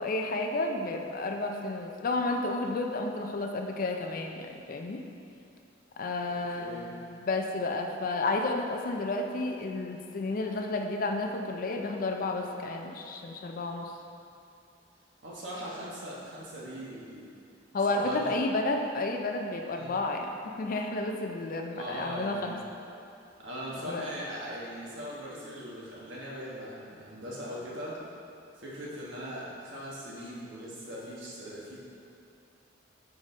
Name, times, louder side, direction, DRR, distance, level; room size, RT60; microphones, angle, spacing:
voice 1, 0.0-5.0 6.0-13.9 17.7-22.6 23.7-24.0, left 2 dB, 50° left, 3 dB, 0.4 m, -31 dB
voice 2, 6.6-6.9 15.2-17.2 17.9-18.3 19.7-19.9 21.7-22.7 23.4-28.0 28.5-31.8, equal, 75° right, -6 dB, 1.3 m, -40 dB
4.9 x 4.1 x 4.9 m, 2.7 s
head